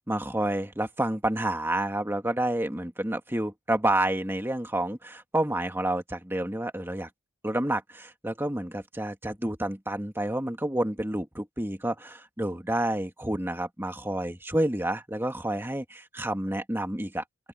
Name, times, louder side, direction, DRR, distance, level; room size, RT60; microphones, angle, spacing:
voice 1, 0.1-7.1 7.4-17.2, right 1 dB, 10° right, 2.1 m, -29 dB
open air
head